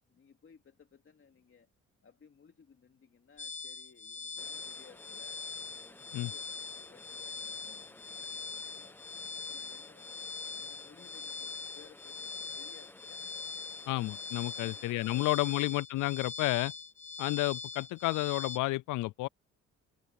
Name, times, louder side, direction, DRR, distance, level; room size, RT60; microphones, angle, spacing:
voice 1, 0.1-1.7 2.0-5.4 5.8-6.4 6.8-9.0 9.3-13.3 14.6-15.7, left 6 dB, 45° left, 2.8 m, -60 dB
sound 1, 3.4-18.6, left 4 dB, 25° left, 0.9 m, -42 dB
sound 2, 4.4-15.6, left 1 dB, 5° left, 1.3 m, -56 dB
Wind instrument woodwind instrument, 5.5-10.0, right 7 dB, 50° right, 4.7 m, -71 dB
voice 2, 13.9-16.7 17.2-19.3, left 19 dB, 85° left, 0.5 m, -31 dB
cardioid pair, 90°, 30 cm